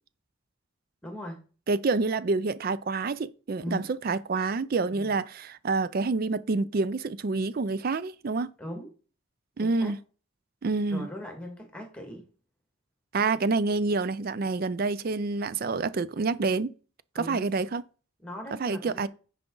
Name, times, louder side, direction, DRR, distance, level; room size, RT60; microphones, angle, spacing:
voice 1, 1.0-1.4 3.6-3.8 4.9-5.1 8.6-8.9 9.6-9.9 10.9-12.2 17.2-17.6 18.2-19.1, equal, 5° left, 1.8 m, -39 dB
voice 2, 1.7-8.5 9.6-10.0 10.6-11.1 13.1-16.7 17.2-17.8 18.6-19.1, right 3 dB, 45° right, 0.4 m, -27 dB
9.8 x 4.9 x 3.8 m
head